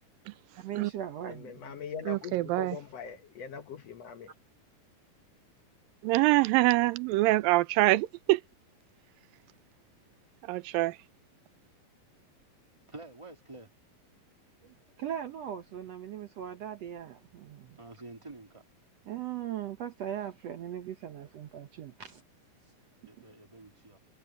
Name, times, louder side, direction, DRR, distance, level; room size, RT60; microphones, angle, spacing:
voice 1, 0.5-1.7 15.0-17.8 19.1-22.2 23.2-23.3, right 10 dB, 65° right, 1.7 m, -39 dB
voice 2, 1.2-4.3, left 7 dB, 65° left, 1.8 m, -42 dB
voice 3, 2.1-2.8 6.0-8.4 10.4-11.0, right 19 dB, 85° right, 2.4 m, -25 dB
voice 4, 12.9-13.7 17.8-18.6 23.0-24.0, right 2 dB, 10° right, 1.6 m, -48 dB
omnidirectional pair, 4.0 m